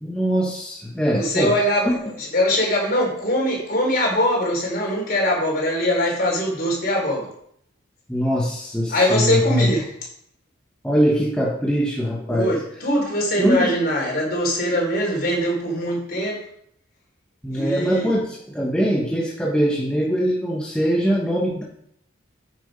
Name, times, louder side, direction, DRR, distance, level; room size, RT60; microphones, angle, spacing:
voice 1, 0.0-1.5 1.9-2.0 8.1-9.7 10.8-12.6 13.4-13.7 17.4-21.6, equal, 5° left, -3 dB, 1.2 m, -22 dB
voice 2, 1.1-7.3 8.9-9.9 12.3-16.4 17.5-18.1, equal, 45° left, -2 dB, 4.4 m, -22 dB
9.6 x 6.9 x 5.2 m, 0.69 s
head